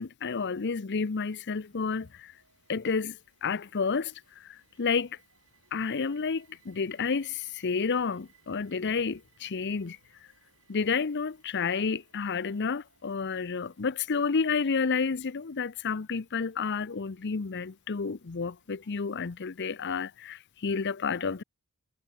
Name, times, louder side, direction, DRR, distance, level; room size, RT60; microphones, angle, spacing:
voice 1, 0.0-2.3 2.7-5.2 5.7-10.0 10.7-21.4, left 5 dB, 50° left, 0.7 m, -30 dB
sound 1, 1.4-20.4, right 5 dB, 60° right, 7.0 m, -67 dB
head